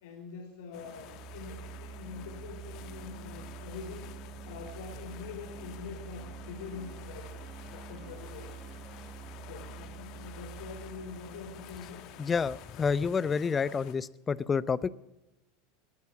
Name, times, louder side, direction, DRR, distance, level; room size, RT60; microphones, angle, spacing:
voice 1, 0.0-4.1 4.4-8.8 9.5-12.0, left 5 dB, 80° left, -1 dB, 3.7 m, -45 dB
sound 1, 0.7-13.9, left 12 dB, 55° left, 1.2 m, -51 dB
sound 2, 0.8-12.6, right 7 dB, 35° right, 1.1 m, -46 dB
voice 2, 12.2-14.9, left 5 dB, 25° left, 19 dB, 0.6 m, -29 dB
21.0 x 8.6 x 7.3 m, 0.96 s
hypercardioid pair, 95°, 0 cm